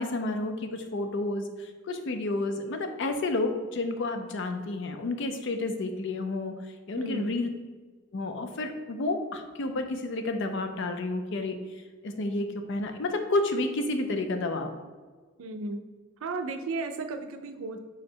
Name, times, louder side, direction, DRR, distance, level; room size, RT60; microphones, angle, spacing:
voice 1, 0.0-7.5 8.1-14.7, left 2 dB, 60° left, 6 dB, 0.5 m, -31 dB
voice 2, 7.0-7.4 15.4-15.8 16.2-17.8, right 3 dB, 80° right, 6 dB, 0.4 m, -34 dB
4.9 x 2.1 x 4.4 m, 1.4 s
head